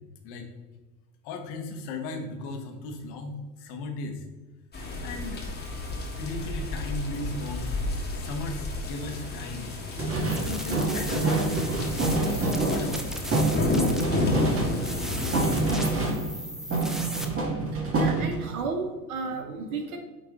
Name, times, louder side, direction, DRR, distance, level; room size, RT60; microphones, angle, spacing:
voice 1, 1.2-4.2 5.0-5.5 6.2-7.8 8.1-9.7 10.4-12.3 12.7-13.2, left 3 dB, 55° left, 4 dB, 1.4 m, -36 dB
sound 1, 4.7-16.1, left 2 dB, 20° left, 1.6 m, -32 dB
sound 2, 10.0-16.4 16.7-18.6, right 2 dB, 30° right, 1.9 m, -27 dB
sound 3, 10.1-17.3, equal, ahead, 0.3 m, -38 dB
voice 2, 17.7-20.0, right 4 dB, 65° right, 4 dB, 1.1 m, -33 dB
9.1 x 3.2 x 3.8 m, 1.2 s
hypercardioid pair, 80°, 47 cm